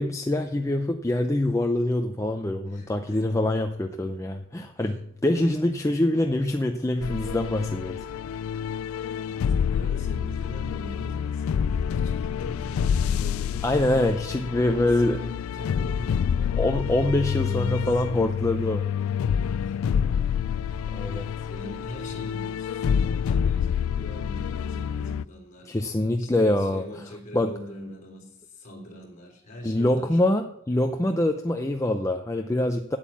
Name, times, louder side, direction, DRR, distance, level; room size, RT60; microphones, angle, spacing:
voice 1, 0.0-8.0 13.6-15.2 16.6-18.8 20.1-20.2 20.9-21.3 25.7-26.8 27.3-27.5 29.6-33.0, left 1 dB, 15° left, 5 dB, 0.5 m, -25 dB
voice 2, 2.7-3.2 4.8-5.0 9.2-14.0 14.9-18.2 19.1-19.8 20.6-20.7 21.0-25.8 26.2-30.2, left 1 dB, 40° left, 0 dB, 3.4 m, -42 dB
sound 1, 7.0-25.2, left 7 dB, 80° left, 0.3 m, -27 dB
9.2 x 8.6 x 7.4 m, 0.75 s
head